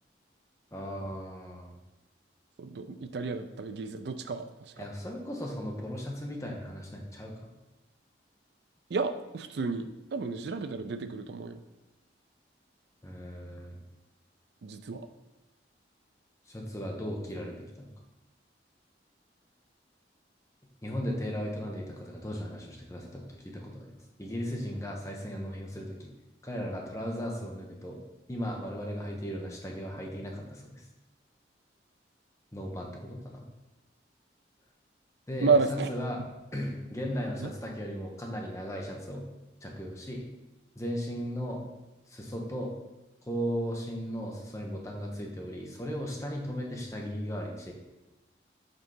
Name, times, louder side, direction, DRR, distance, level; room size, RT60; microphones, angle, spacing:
voice 1, 0.7-1.7 4.8-7.5 13.0-13.8 16.5-17.9 20.8-26.1 26.4-28.0 28.3-30.9 32.5-33.4 35.3-39.2 39.6-40.2 40.8-41.6 42.1-42.7 43.2-47.7, equal, 15° left, 0 dB, 0.9 m, -36 dB
voice 2, 2.6-4.8 8.9-11.6 14.6-15.1 35.4-35.9 37.4-37.5, right 4 dB, 65° right, 10 dB, 0.4 m, -31 dB
5.3 x 4.0 x 5.6 m, 1.0 s
head